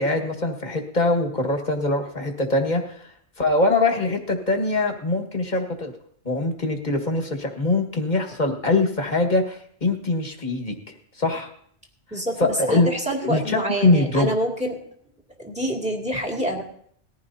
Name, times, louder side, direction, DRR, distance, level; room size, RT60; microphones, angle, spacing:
voice 1, 0.0-3.1 3.4-5.9 6.3-10.7 11.2-11.5 12.4-12.9 13.2-14.3, left 2 dB, 40° left, 3 dB, 1.9 m, -23 dB
voice 2, 12.1-14.8 15.4-16.6, right 1 dB, 5° right, -1 dB, 2.4 m, -26 dB
20.0 x 15.0 x 2.8 m, 0.65 s
omnidirectional pair, 1.1 m